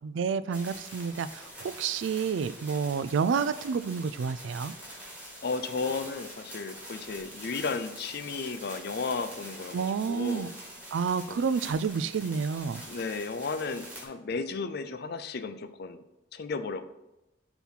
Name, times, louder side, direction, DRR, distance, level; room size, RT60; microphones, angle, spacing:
voice 1, 0.0-4.7 9.7-10.5 10.9-12.8, right 6 dB, 90° right, 14 dB, 0.3 m, -29 dB
sound 1, 0.5-14.0, right 1 dB, 10° right, 2.0 m, -45 dB
voice 2, 5.4-10.5 11.3-11.4 12.9-16.0 16.3-16.8, left 4 dB, 60° left, 10 dB, 0.5 m, -34 dB
7.0 x 3.1 x 5.7 m, 0.95 s
head